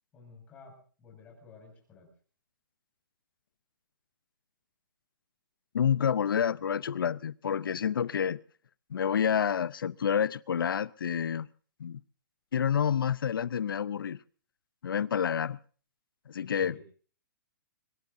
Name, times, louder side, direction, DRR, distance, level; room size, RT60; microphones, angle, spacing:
voice 1, 0.1-2.1 16.6-16.8, left 4 dB, 15° left, 6.4 m, -53 dB
voice 2, 5.7-8.4 8.9-11.5 11.8-12.0 12.5-14.2 14.8-15.6 16.3-16.8, left 8 dB, 85° left, 0.7 m, -28 dB
23.5 x 22.0 x 2.6 m
hypercardioid pair, 170°, 11 cm